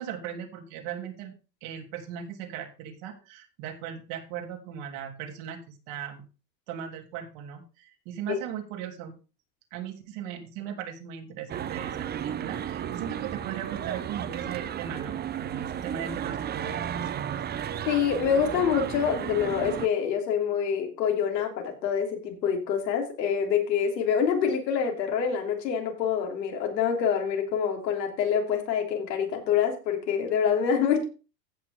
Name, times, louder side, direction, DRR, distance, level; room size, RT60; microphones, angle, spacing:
voice 1, 0.0-1.3 1.6-6.3 6.7-9.2 9.7-17.3, right 9 dB, 60° right, 4 dB, 3.2 m, -38 dB
sound 1, 11.5-19.9, right 9 dB, 20° right, 0.6 m, -33 dB
voice 2, 17.9-31.0, left 7 dB, 80° left, 2 dB, 3.6 m, -26 dB
15.5 x 6.1 x 3.6 m, 0.32 s
hypercardioid pair, 100°, 50 cm